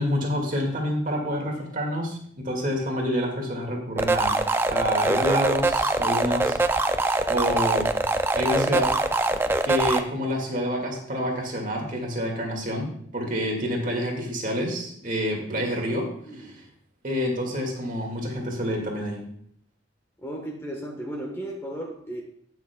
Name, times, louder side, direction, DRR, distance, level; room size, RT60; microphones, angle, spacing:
voice 1, 0.0-4.3 4.7-7.9 8.4-8.9 9.6-16.6 17.0-19.2, equal, 40° right, 0 dB, 2.0 m, -28 dB
sound 1, 4.0-10.0, right 2 dB, 10° right, 0.3 m, -23 dB
voice 2, 16.2-16.6 20.2-22.2, right 1 dB, 15° left, 1 dB, 1.2 m, -35 dB
18.0 x 6.2 x 2.3 m, 0.63 s
head